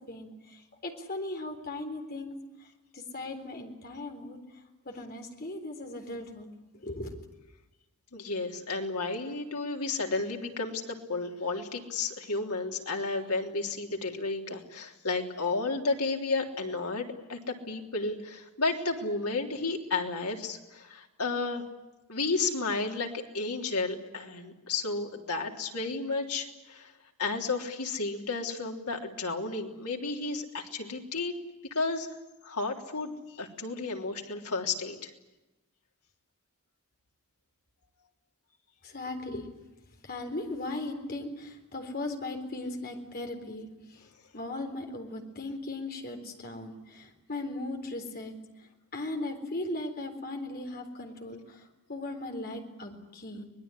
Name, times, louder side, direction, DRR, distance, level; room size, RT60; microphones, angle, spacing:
voice 1, 0.0-2.7 2.9-4.4 4.8-6.5 6.8-7.3 38.8-39.5 40.0-48.3 48.9-53.5, left 2 dB, 45° left, 4 dB, 3.9 m, -38 dB
voice 2, 8.1-10.8 11.1-21.6 22.1-26.9 27.2-31.3 31.7-32.1 32.4-35.1, left 3 dB, 85° left, 2 dB, 3.4 m, -32 dB
25.0 x 20.5 x 9.9 m, 1.0 s
head